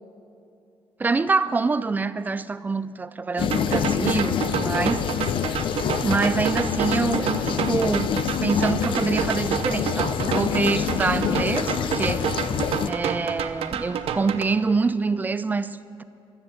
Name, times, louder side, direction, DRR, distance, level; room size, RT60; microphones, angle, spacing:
voice 1, 1.0-5.0 6.0-8.1 8.4-12.3 12.8-16.0, right 4 dB, 15° right, 0.4 m, -25 dB
sound 1, 3.4-12.9, left 8 dB, 60° left, 0.6 m, -26 dB
sound 2, 3.5-14.4, right 7 dB, 75° right, 0.9 m, -29 dB
15.0 x 13.0 x 7.1 m
cardioid pair, 155°, 10 cm